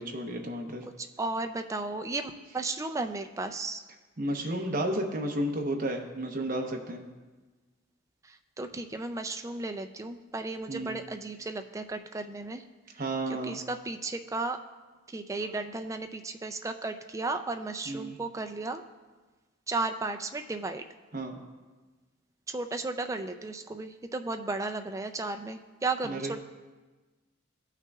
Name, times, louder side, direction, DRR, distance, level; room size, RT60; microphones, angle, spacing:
voice 1, 0.0-0.8 4.2-7.0 10.7-11.0 13.0-13.6 17.9-18.2 21.1-21.4 26.0-26.3, right 1 dB, 40° right, 2 dB, 0.8 m, -32 dB
voice 2, 1.0-3.8 8.2-12.6 13.3-14.6 15.1-18.8 19.7-20.8 22.5-26.4, right 3 dB, 15° right, 6 dB, 0.3 m, -34 dB
15.5 x 5.7 x 2.3 m, 1.3 s
head